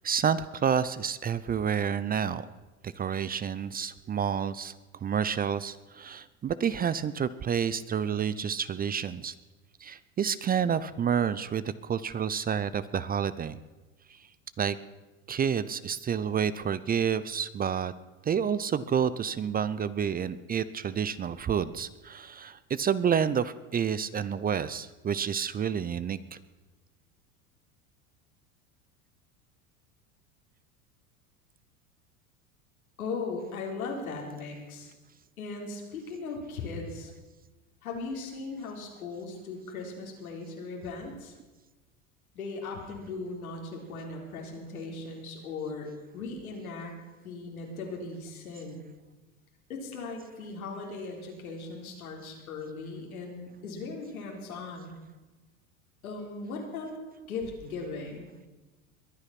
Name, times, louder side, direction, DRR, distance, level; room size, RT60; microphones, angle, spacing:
voice 1, 0.0-2.5 2.8-9.3 9.8-13.6 14.6-14.8 15.3-17.9 18.2-26.4, right 7 dB, 20° right, 16 dB, 0.6 m, -29 dB
voice 2, 33.0-34.9 35.4-37.1 37.8-41.4 42.3-45.9 46.1-46.9 47.2-48.8 49.7-54.9 56.0-57.0 57.3-58.3, left 3 dB, 85° left, 0 dB, 4.1 m, -38 dB
22.0 x 9.7 x 5.9 m, 1.2 s
hypercardioid pair, 90°, 42 cm